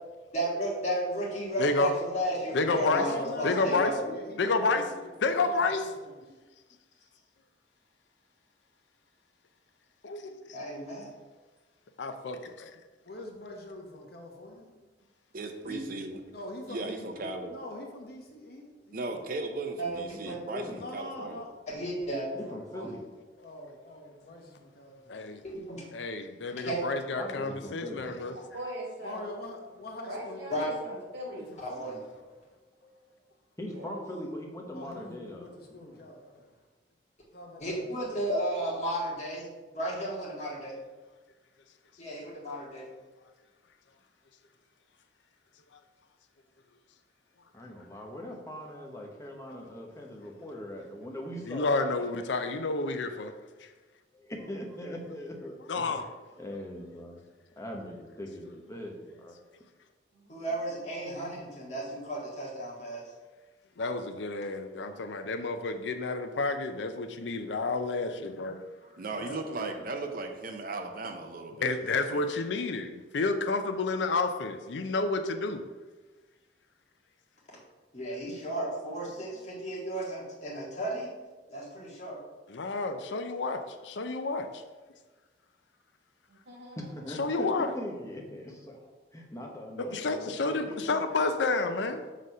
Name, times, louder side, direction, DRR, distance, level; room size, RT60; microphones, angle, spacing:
voice 1, 0.3-4.2 10.5-11.1 15.6-15.8 17.2-17.3 19.8-20.5 21.7-22.5 22.7-22.9 25.4-25.8 26.6-26.8 30.5-30.7 31.6-32.0 37.6-40.8 42.0-42.6 60.3-63.0 77.9-81.1 81.5-82.2, right 1 dB, 40° left, -4 dB, 1.8 m, -33 dB
voice 2, 1.6-1.9 2.5-3.1 3.4-3.9 4.4-4.9 5.2-5.9 10.0-10.6 12.0-12.7 25.1-25.4 25.9-28.3 51.5-53.3 55.7-56.1 63.8-68.6 71.6-75.6 82.5-84.6 87.2-87.7 89.9-92.0, left 3 dB, 80° left, 8 dB, 0.5 m, -30 dB
voice 3, 3.0-6.2 13.0-14.7 16.3-17.1 17.5-19.3 20.8-21.5 22.2-22.5 23.4-25.2 29.0-30.8 31.4-32.6 34.7-36.5 37.3-38.1 69.0-69.4 69.7-70.0, left 1 dB, 60° left, 1 dB, 1.2 m, -44 dB
voice 4, 15.3-16.2 16.7-17.5 18.9-21.4 68.8-72.3, right 2 dB, 50° right, 5 dB, 0.6 m, -37 dB
voice 5, 20.1-20.8 22.3-23.0 23.4-23.5 27.2-28.4 32.8-32.9 33.6-36.1 47.5-52.0 54.1-56.0 56.4-57.2 57.6-59.4 86.8-91.0, left 1 dB, 15° left, 0 dB, 0.9 m, -41 dB
voice 6, 28.5-29.3 30.1-31.5 33.6-34.0 47.6-47.7 57.5-57.6 60.1-60.5 79.1-79.4 86.3-87.1, right 1 dB, 70° right, -3 dB, 2.2 m, -42 dB
6.3 x 4.0 x 5.4 m, 1.3 s
head